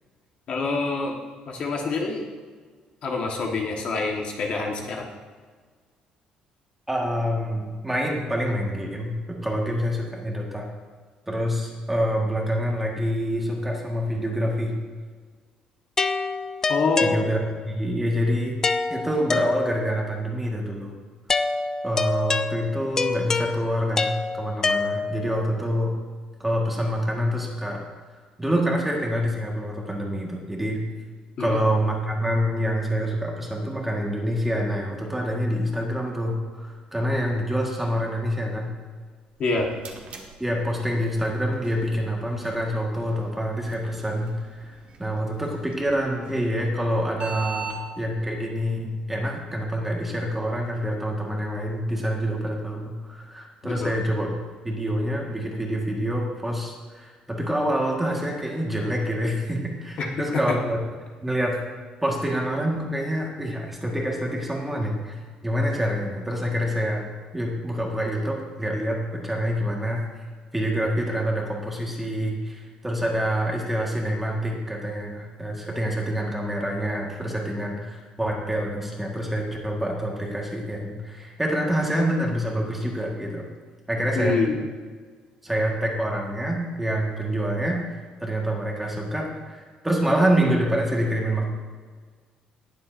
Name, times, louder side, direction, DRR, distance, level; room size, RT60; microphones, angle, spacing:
voice 1, 0.5-1.2 1.4-2.2 3.0-5.1 16.7-17.2 31.4-31.6 39.4-39.7 53.6-54.0 60.0-60.4 84.1-84.6, left 3 dB, 45° left, 1 dB, 1.4 m, -26 dB
voice 2, 6.9-10.7 11.3-14.7 17.0-17.4 17.6-18.6 18.9-20.9 21.8-25.9 26.4-27.8 28.4-30.8 31.4-38.7 40.4-54.3 54.6-60.8 61.2-61.6 62.0-65.1 65.4-67.0 67.3-70.0 70.5-83.5 83.9-84.4 85.4-91.4, equal, 5° right, -2 dB, 1.6 m, -26 dB
sound 1, 16.0-17.7 18.6-20.0 21.3-25.4, left 4 dB, 20° left, 0.4 m, -26 dB
sound 2, 39.3-47.8, right 5 dB, 55° right, 1.4 m, -42 dB
18.5 x 7.2 x 2.6 m, 1.5 s
cardioid pair, 150°, 2 cm